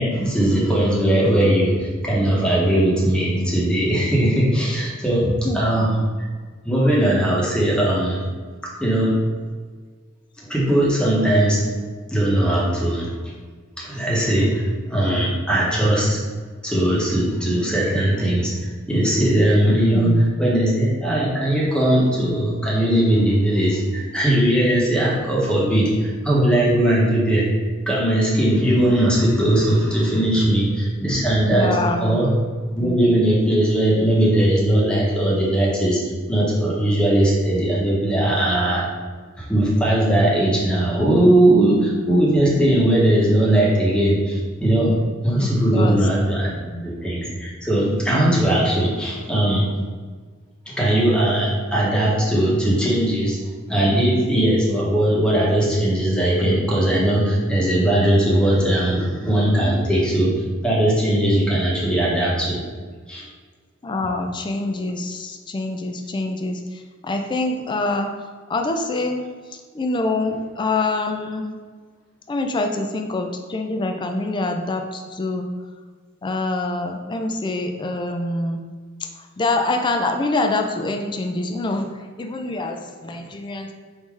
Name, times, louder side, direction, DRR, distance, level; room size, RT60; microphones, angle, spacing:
voice 1, 0.0-6.3 6.6-8.2 8.8-9.2 10.4-11.7 12.1-13.1 13.8-16.2 16.6-18.5 18.9-27.5 27.9-32.3 32.7-36.0 36.3-38.8 39.4-45.0 45.2-46.5 46.8-49.7 50.7-53.4 53.7-60.3 60.6-62.6 63.1-63.2, right 1 dB, 5° left, -5 dB, 0.9 m, -19 dB
voice 2, 5.4-5.8 19.9-20.5 31.5-32.2 45.3-46.8 63.8-68.1 68.5-71.5 72.3-75.5 76.2-78.6 79.0-83.7, left 2 dB, 25° left, 4 dB, 0.3 m, -26 dB
3.7 x 2.7 x 4.6 m, 1.5 s
head